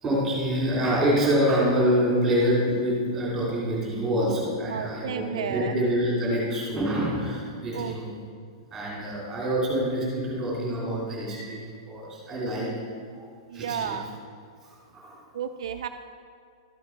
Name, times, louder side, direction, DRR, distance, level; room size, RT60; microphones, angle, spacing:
voice 1, 0.0-8.1 8.7-12.7 13.1-13.3 13.5-14.0 14.6-15.2, equal, 5° right, -6 dB, 2.8 m, -26 dB
voice 2, 4.7-5.7 7.7-7.9 13.5-14.2 15.3-15.9, right 8 dB, 60° right, 7 dB, 0.4 m, -32 dB
12.5 x 7.9 x 4.4 m, 2.2 s
supercardioid pair, 180°, 3 cm